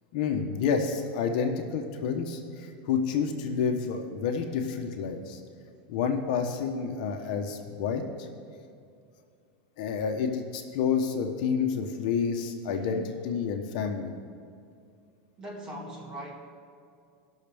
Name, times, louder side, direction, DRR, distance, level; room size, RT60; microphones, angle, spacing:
voice 1, 0.1-5.4 5.9-8.3 9.8-14.1, left 6 dB, 60° left, 4 dB, 1.0 m, -29 dB
voice 2, 15.4-16.3, right 1 dB, 15° right, -2 dB, 1.8 m, -40 dB
18.5 x 6.4 x 3.5 m, 2.4 s
supercardioid pair, 155°, 5 cm